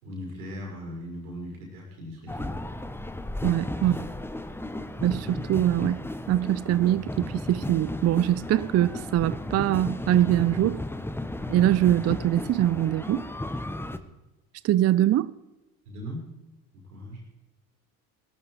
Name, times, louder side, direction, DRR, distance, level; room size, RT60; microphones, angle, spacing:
voice 1, 0.0-2.7 3.8-4.0 15.9-16.3 16.7-17.2, equal, 85° right, 5.9 m, -39 dB
sound 1, 2.3-14.0, left 1 dB, 5° left, 1.2 m, -34 dB
voice 2, 3.4-3.9 5.0-6.0 6.3-10.8 11.5-13.2 14.6-15.3, right 13 dB, 35° right, 0.5 m, -23 dB
18.0 x 12.5 x 4.8 m
hypercardioid pair, 65°, 42 cm